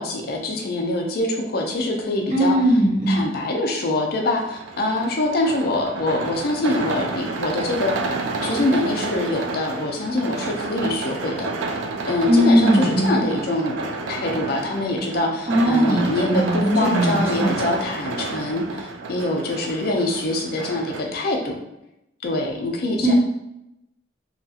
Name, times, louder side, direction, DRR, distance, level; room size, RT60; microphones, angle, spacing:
voice 1, 0.0-2.6 3.1-8.1 8.4-11.5 12.0-13.8 14.1-21.6 22.2-23.1, left 2 dB, 55° left, 1 dB, 0.4 m, -24 dB
voice 2, 2.3-3.2 12.3-13.3 15.5-17.6 23.0-23.1, equal, 35° right, -5 dB, 0.9 m, -19 dB
sound 1, 4.4-21.0, right 3 dB, 85° right, 0.4 m, -30 dB
2.8 x 2.4 x 2.7 m, 0.85 s
head